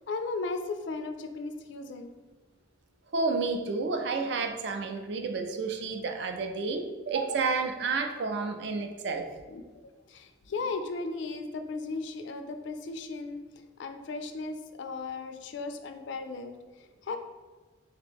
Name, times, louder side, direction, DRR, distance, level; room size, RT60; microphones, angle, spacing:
voice 1, 0.0-2.1 9.5-13.4 13.8-17.2, left 3 dB, 60° left, 7 dB, 0.4 m, -36 dB
voice 2, 3.1-9.2, right 4 dB, 60° right, 5 dB, 0.4 m, -30 dB
3.7 x 2.9 x 3.5 m, 1.3 s
head